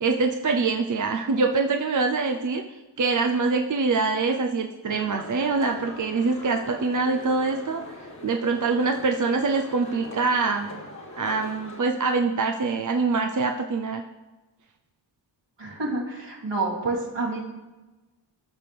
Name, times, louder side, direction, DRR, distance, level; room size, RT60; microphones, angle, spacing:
voice 1, 0.0-2.6 3.0-7.9 8.2-10.7 11.2-14.0, right 4 dB, 45° right, 4 dB, 0.6 m, -24 dB
sound 1, 4.9-11.8, left 1 dB, 40° left, 1.6 m, -42 dB
voice 2, 15.6-17.4, right 3 dB, 70° right, -4 dB, 3.1 m, -28 dB
15.5 x 6.0 x 3.5 m, 1.2 s
wide cardioid pair, 65°, 44 cm